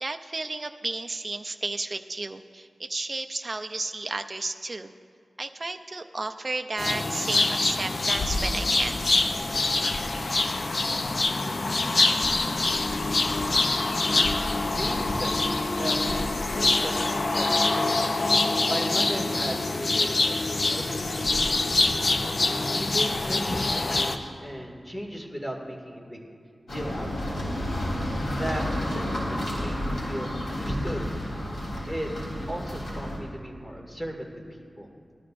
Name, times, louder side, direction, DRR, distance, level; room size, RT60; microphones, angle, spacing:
voice 1, 0.0-4.9 5.4-9.1, right 2 dB, 40° right, 6 dB, 0.4 m, -33 dB
sound 1, 6.8-24.2, left 2 dB, 55° left, 0.6 m, -25 dB
voice 2, 14.7-15.5 15.8-18.1 18.3-22.0 22.7-26.2 26.7-27.4 28.3-31.0 31.9-32.1 32.5-34.4 34.8-34.9, equal, 20° left, 0 dB, 2.1 m, -36 dB
sound 2, 26.7-33.2, left 1 dB, 75° left, 3.4 m, -31 dB
19.0 x 13.0 x 2.6 m, 2.2 s
wide cardioid pair, 70°, 0 cm